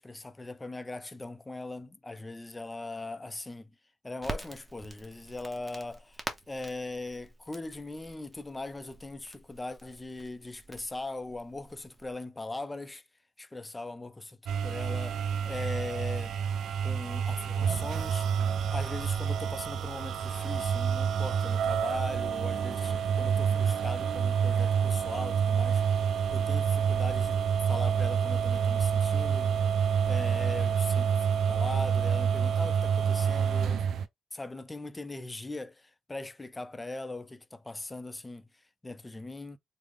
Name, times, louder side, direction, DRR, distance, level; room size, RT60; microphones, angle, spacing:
voice 1, 0.0-3.7 4.0-13.0 13.4-16.4 16.8-18.3 18.7-29.7 30.0-33.9 34.3-39.6, left 2 dB, 15° left, 0.4 m, -40 dB
Crackle, 4.2-12.1, right 2 dB, 15° right, 0.7 m, -46 dB
sound 1, 14.5-34.0, right 7 dB, 70° right, 0.3 m, -28 dB
3.5 x 2.0 x 3.3 m
cardioid pair, 90°, 0 cm